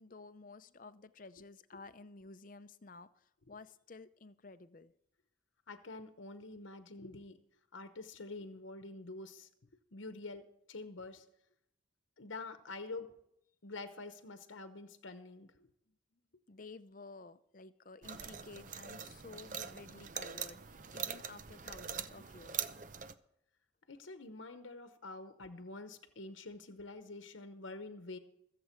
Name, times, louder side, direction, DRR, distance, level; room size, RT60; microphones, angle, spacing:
voice 1, 0.0-4.9 16.5-22.8, left 3 dB, 45° left, 12 dB, 0.6 m, -53 dB
voice 2, 5.7-7.4 7.7-9.5 9.9-11.3 12.2-13.2 13.6-15.7 23.9-28.2, left 3 dB, 85° left, 9 dB, 1.0 m, -47 dB
sound 1, 18.0-23.1, right 8 dB, 40° right, 0.6 m, -43 dB
22.0 x 7.7 x 4.5 m, 0.77 s
head